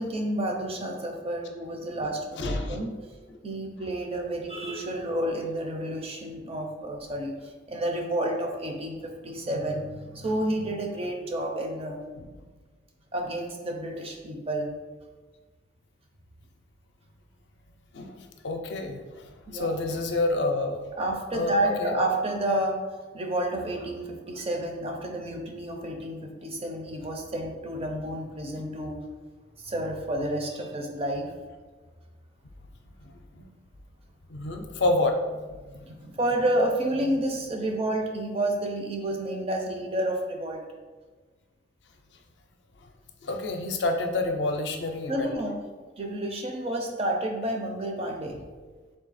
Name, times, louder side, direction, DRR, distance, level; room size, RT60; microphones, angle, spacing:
voice 1, 0.0-2.9 3.4-12.0 13.1-14.7 19.5-19.7 21.0-22.8 23.1-29.0 29.6-31.3 35.6-40.6 45.1-45.5 46.0-48.4, right 1 dB, 30° right, 2 dB, 0.5 m, -30 dB
voice 2, 2.4-2.8 3.3-3.4 12.2-12.3 17.9-18.2 18.4-20.9 21.3-22.0 33.0-33.4 34.3-35.2 43.2-45.3, left 2 dB, 65° left, 4 dB, 0.5 m, -28 dB
3.8 x 2.7 x 4.0 m, 1.4 s
head